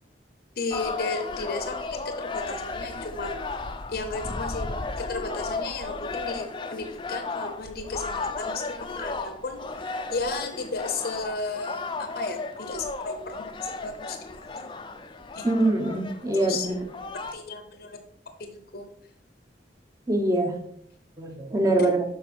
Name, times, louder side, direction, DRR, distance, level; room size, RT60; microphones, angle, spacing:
voice 1, 0.6-3.6 3.9-4.7 5.0-14.6 15.3-15.5 16.3-16.7 17.3-18.0 18.4-18.9 21.8-21.9, left 3 dB, 60° left, 6 dB, 0.8 m, -34 dB
sound 1, 0.7-17.3, left 3 dB, 25° left, 0.5 m, -34 dB
voice 2, 15.4-16.7 20.1-20.6 21.2-22.0, right 2 dB, 20° right, 4 dB, 1.0 m, -23 dB
7.7 x 5.4 x 4.4 m, 0.68 s
head